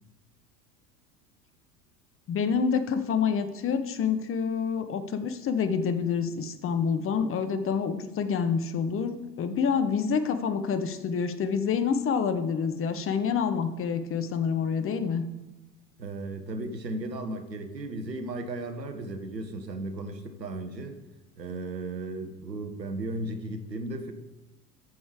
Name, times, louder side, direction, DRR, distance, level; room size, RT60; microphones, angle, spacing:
voice 1, 2.3-15.2, left 6 dB, 25° left, 10 dB, 0.9 m, -27 dB
voice 2, 16.0-21.0 21.4-24.1, right 2 dB, 85° right, 8 dB, 1.1 m, -35 dB
14.0 x 5.4 x 4.8 m, 1.0 s
figure-of-eight pair, 80°, 48 cm